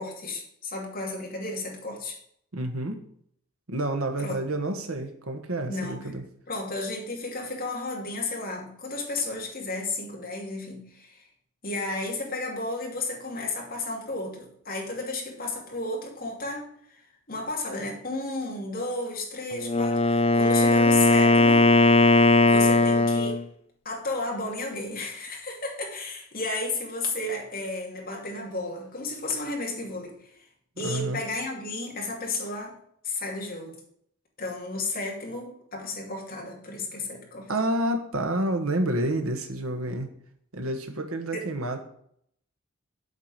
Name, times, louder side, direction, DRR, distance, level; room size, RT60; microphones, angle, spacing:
voice 1, 0.0-2.2 4.2-4.4 5.7-6.1 6.5-11.3 11.6-16.7 17.3-21.7 22.4-23.4 23.8-30.5 30.8-32.8 33.0-33.8 34.4-37.5 41.3-41.5, left 2 dB, 45° left, -1 dB, 2.6 m, -33 dB
voice 2, 2.5-3.0 3.7-6.2 30.8-31.2 37.5-40.1 40.5-41.8, right 1 dB, 80° right, 5 dB, 1.5 m, -29 dB
Wind instrument woodwind instrument, 19.6-23.4, left 2 dB, 30° left, 0.6 m, -19 dB
8.2 x 4.9 x 7.5 m, 0.68 s
head